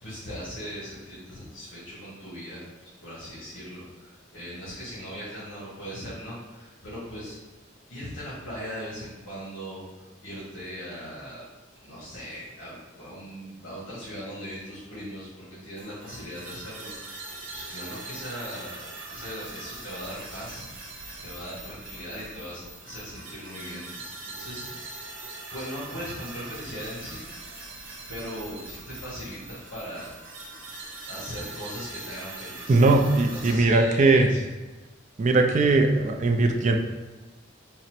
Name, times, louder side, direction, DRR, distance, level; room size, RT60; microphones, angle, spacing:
voice 1, 0.0-7.4 7.9-9.8 10.2-11.4 11.8-18.8 19.1-20.6 21.2-24.8 25.5-27.2 28.1-30.1 31.1-33.0 33.3-34.5, equal, 70° left, -9 dB, 1.3 m, -39 dB
sound 1, 15.8-33.5, right 3 dB, 80° right, 0.8 m, -42 dB
voice 2, 32.7-34.3 35.2-36.8, right 3 dB, 40° right, 4 dB, 0.3 m, -20 dB
3.9 x 2.0 x 4.4 m, 1.1 s
head